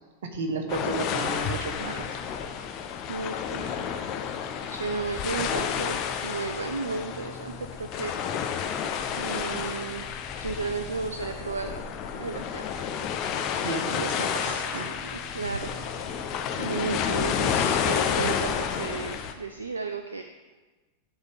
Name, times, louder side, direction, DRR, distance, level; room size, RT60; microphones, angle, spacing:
voice 1, 0.2-2.2 13.6-14.9, right 3 dB, 60° right, 4 dB, 1.1 m, -32 dB
sound 1, 0.7-19.3, left 7 dB, 40° left, 0.7 m, -30 dB
voice 2, 3.1-3.7 4.7-8.1 8.4-8.7 9.2-10.0 10.4-11.9 12.1-12.9 15.1-15.7 16.1-16.3 16.6-20.2, right 4 dB, 75° right, 7 dB, 0.4 m, -33 dB
11.0 x 3.7 x 5.4 m, 1.2 s
figure-of-eight pair, 90°, 0 cm